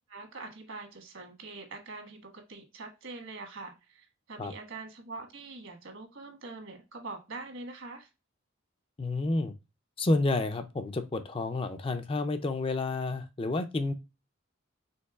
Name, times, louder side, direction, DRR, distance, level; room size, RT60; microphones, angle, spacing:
voice 1, 0.1-8.1, right 3 dB, 70° right, 1.4 m, -44 dB
voice 2, 9.0-9.5 10.0-13.9, left 2 dB, 25° left, 0.4 m, -30 dB
5.3 x 3.7 x 2.2 m
head